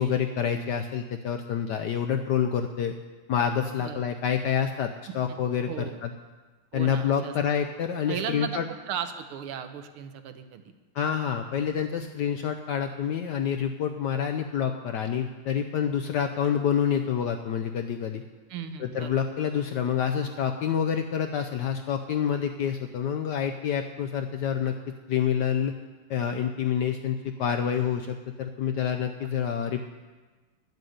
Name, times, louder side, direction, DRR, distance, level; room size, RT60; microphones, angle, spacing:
voice 1, 0.0-2.9 3.3-4.9 5.1-5.7 6.0-6.1 6.7-8.6 10.9-18.2 18.8-24.7 25.1-25.7 26.1-29.9, left 8 dB, 75° left, 6 dB, 1.0 m, -27 dB
voice 2, 5.7-6.0 6.7-7.3 8.1-10.6 18.5-19.2 29.2-29.3, right 7 dB, 80° right, 9 dB, 1.7 m, -36 dB
11.0 x 7.7 x 7.7 m, 1.3 s
omnidirectional pair, 2.4 m